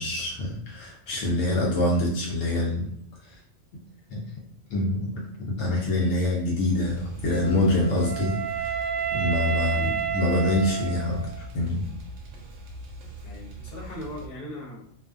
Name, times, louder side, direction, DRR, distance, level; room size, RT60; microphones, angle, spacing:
voice 1, 0.0-2.9 3.2-3.4 4.1-4.2 4.7-5.1 5.4-11.8, left 2 dB, 80° left, -3 dB, 1.0 m, -26 dB
sound 1, 6.6-14.3, right 1 dB, 75° right, 1.0 m, -42 dB
Wind instrument woodwind instrument, 7.3-11.4, right 8 dB, 20° left, 0.4 m, -30 dB
voice 2, 9.7-10.1 13.2-14.9, left 1 dB, 50° left, -4 dB, 1.1 m, -39 dB
2.6 x 2.3 x 2.4 m, 0.67 s
omnidirectional pair, 1.3 m